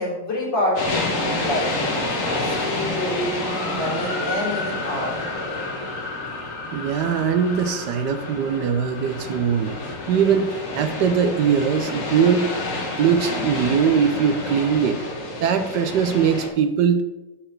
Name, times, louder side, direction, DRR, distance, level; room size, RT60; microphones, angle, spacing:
voice 1, 0.0-1.7 2.3-5.1, left 1 dB, 70° left, -6 dB, 3.9 m, -27 dB
sound 1, 0.8-16.5, left 2 dB, 45° left, 1.6 m, -29 dB
voice 2, 6.7-9.8 10.1-12.5 13.0-15.0 15.4-17.0, right 7 dB, 70° right, 9 dB, 1.2 m, -21 dB
7.7 x 4.4 x 6.6 m, 1.0 s
omnidirectional pair, 2.0 m